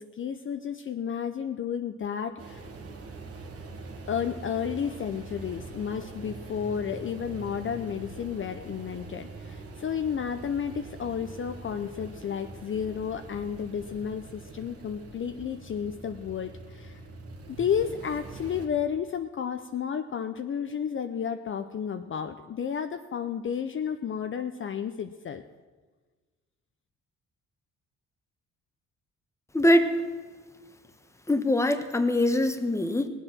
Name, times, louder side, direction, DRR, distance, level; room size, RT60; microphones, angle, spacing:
voice 1, 0.0-2.7 4.1-17.0 17.5-25.4, left 7 dB, 40° left, 7 dB, 0.7 m, -32 dB
sound 1, 2.4-18.7, right 3 dB, 50° right, 1.8 m, -43 dB
voice 2, 29.5-29.9 31.3-33.1, left 1 dB, 10° left, 8 dB, 1.1 m, -23 dB
19.0 x 8.0 x 6.1 m, 1.4 s
cardioid pair, 90°, 30 cm